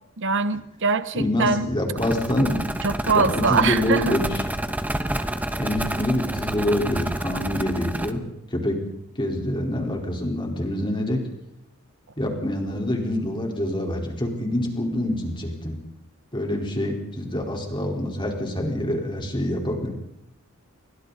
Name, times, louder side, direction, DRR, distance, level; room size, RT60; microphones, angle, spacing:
voice 1, 0.2-1.7 2.8-4.2, right 4 dB, 55° right, 13 dB, 1.1 m, -23 dB
voice 2, 1.1-2.5 3.1-4.4 5.6-8.2 8.5-8.8 9.2-11.2 12.2-15.8 16.3-19.9, left 1 dB, 20° left, 1 dB, 4.4 m, -26 dB
sound 1, 2.0-8.1, right 1 dB, 5° right, 1.2 m, -29 dB
29.5 x 24.0 x 4.2 m, 0.81 s
head